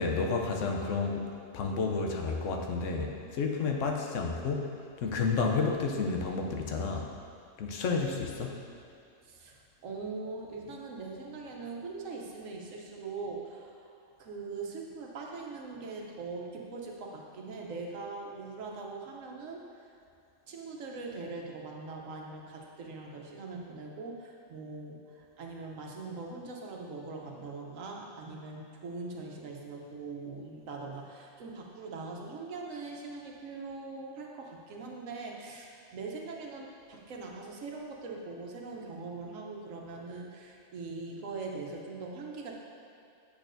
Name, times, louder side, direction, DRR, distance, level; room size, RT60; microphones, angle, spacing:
voice 1, 0.0-4.7 5.0-7.1 7.6-8.6, left 4 dB, 75° left, 2 dB, 1.0 m, -31 dB
voice 2, 9.3-13.8 14.2-19.8 20.5-42.5, right 3 dB, 85° right, 0 dB, 1.2 m, -41 dB
8.0 x 6.5 x 2.6 m, 2.6 s
omnidirectional pair, 1.3 m